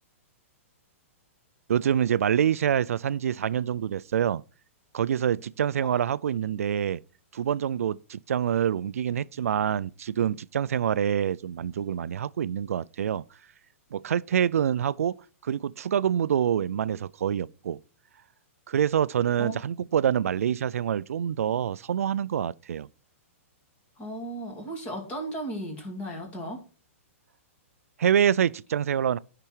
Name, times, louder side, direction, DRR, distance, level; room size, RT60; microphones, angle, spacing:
voice 1, 1.7-4.4 4.9-7.0 7.3-13.2 13.9-15.2 15.4-17.8 18.7-22.9 28.0-29.2, right 9 dB, 90° right, 0.4 m, -26 dB
voice 2, 24.0-26.6, right 1 dB, 15° left, 2.6 m, -35 dB
12.0 x 5.9 x 4.5 m
hypercardioid pair, 165°, 8 cm